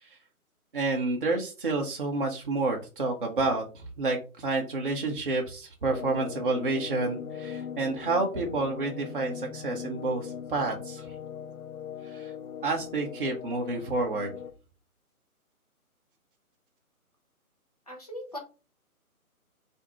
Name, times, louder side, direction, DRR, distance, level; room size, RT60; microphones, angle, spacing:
voice 1, 0.7-11.1 12.1-12.3 12.6-14.3, right 3 dB, 35° right, 0 dB, 0.5 m, -29 dB
sound 1, 5.9-14.5, left 8 dB, 70° left, 0.6 m, -40 dB
voice 2, 17.9-18.4, left 1 dB, 25° left, 0 dB, 0.6 m, -39 dB
3.4 x 2.5 x 2.9 m, 0.33 s
figure-of-eight pair, 150°, 44 cm